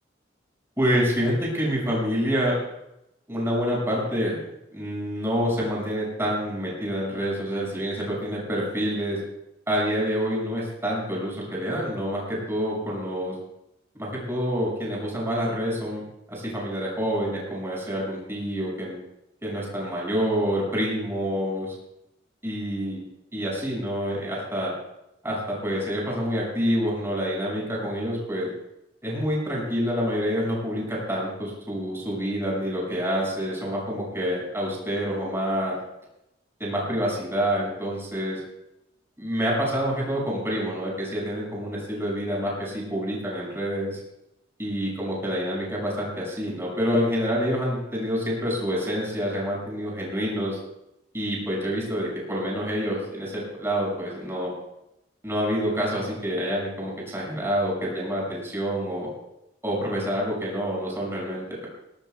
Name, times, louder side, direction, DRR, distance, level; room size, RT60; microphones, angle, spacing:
voice 1, 0.8-2.6 3.3-4.4 4.7-9.2 9.7-13.3 14.0-19.0 19.4-21.7 22.4-23.0 23.3-24.7 25.2-28.5 29.0-35.8 36.6-38.4 39.2-44.0 44.6-50.6 51.1-54.5 55.2-59.1 59.6-61.7, equal, 15° right, -4 dB, 6.4 m, -27 dB
19.0 x 18.5 x 2.4 m, 0.84 s
head